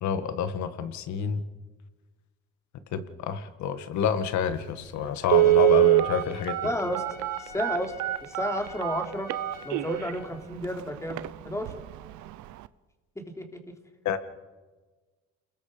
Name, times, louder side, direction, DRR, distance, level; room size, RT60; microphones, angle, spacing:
voice 1, 0.0-1.4 2.9-6.6 14.1-14.2, left 8 dB, 75° left, 10 dB, 1.9 m, -28 dB
Telephone, 4.5-4.6 5.2-10.1 10.6-10.7 11.1-11.3 11.7-12.0 12.3-12.4, right 18 dB, 85° right, 0.8 m, -23 dB
Trumpet, 5.2-10.5, left 2 dB, 30° left, 4.2 m, -46 dB
voice 2, 6.6-7.0 7.4-7.9 8.2-9.3 9.7-11.7 13.2-13.7, left 1 dB, 10° left, 3 dB, 3.4 m, -32 dB
28.5 x 21.5 x 5.2 m, 1.3 s
cardioid pair, 95°, 29 cm